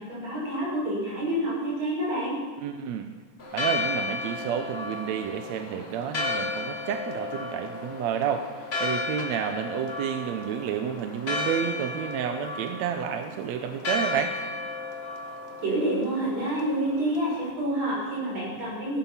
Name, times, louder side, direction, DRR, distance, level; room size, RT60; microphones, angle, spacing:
voice 1, 0.0-2.4 15.6-19.0, right 1 dB, 55° right, -5 dB, 7.0 m, -28 dB
voice 2, 2.6-3.1 3.5-8.5 8.8-14.4, right 8 dB, 70° right, 6 dB, 1.8 m, -30 dB
Church bell, 3.4-17.5, left 3 dB, 65° left, 0.6 m, -34 dB
17.5 x 11.5 x 5.7 m, 1.4 s
omnidirectional pair, 3.7 m